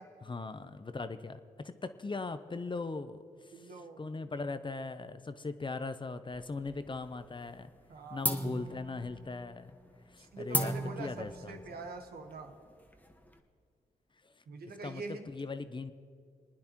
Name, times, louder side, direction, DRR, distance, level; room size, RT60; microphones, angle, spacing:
voice 1, 0.3-3.5 4.0-7.7 8.1-9.7 10.1-11.6 14.2-14.3 14.8-15.0 15.3-15.9, left 3 dB, 30° left, 11 dB, 0.7 m, -39 dB
voice 2, 3.5-4.1 7.9-8.4 10.2-12.5 14.5-15.3, right 3 dB, 75° right, 4 dB, 1.2 m, -44 dB
sound 1, 6.3-7.2 7.5-7.9 8.2-13.4, equal, 10° left, 1.1 m, -37 dB
26.5 x 9.6 x 3.0 m, 2.1 s
cardioid pair, 55°, 16 cm